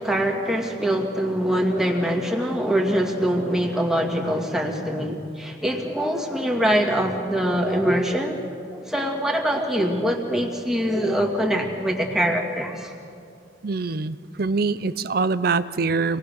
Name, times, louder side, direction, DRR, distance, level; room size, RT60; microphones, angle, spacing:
voice 1, 0.0-8.4 8.7-12.9, equal, ahead, 0 dB, 2.1 m, -23 dB
voice 2, 13.6-16.2, right 4 dB, 55° right, 15 dB, 0.6 m, -24 dB
26.0 x 19.0 x 6.6 m, 2.4 s
head